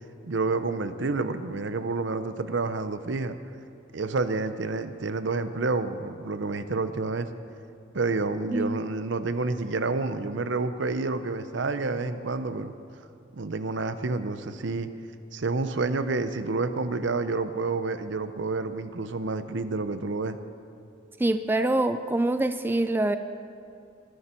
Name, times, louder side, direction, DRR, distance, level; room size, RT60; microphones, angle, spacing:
voice 1, 0.2-3.4 3.9-7.3 7.9-12.7 13.3-14.9 15.3-20.4, right 3 dB, 65° right, 11 dB, 0.7 m, -29 dB
voice 2, 8.5-8.8 21.2-23.2, right 2 dB, 10° right, 10 dB, 0.3 m, -25 dB
20.5 x 11.0 x 4.5 m, 2.5 s
head